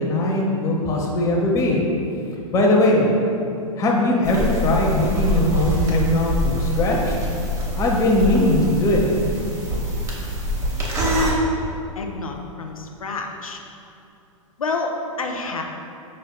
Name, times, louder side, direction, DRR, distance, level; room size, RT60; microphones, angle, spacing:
voice 1, 0.0-1.8 2.5-3.1 3.8-7.2 7.8-9.0, left 1 dB, 20° left, -1 dB, 0.6 m, -20 dB
sound 1, 4.2-11.3, equal, 15° right, 0.7 m, -25 dB
voice 2, 12.0-13.6 14.6-15.6, left 3 dB, 75° left, 3 dB, 0.4 m, -29 dB
4.9 x 4.2 x 2.2 m, 2.7 s
figure-of-eight pair, 100°, 18 cm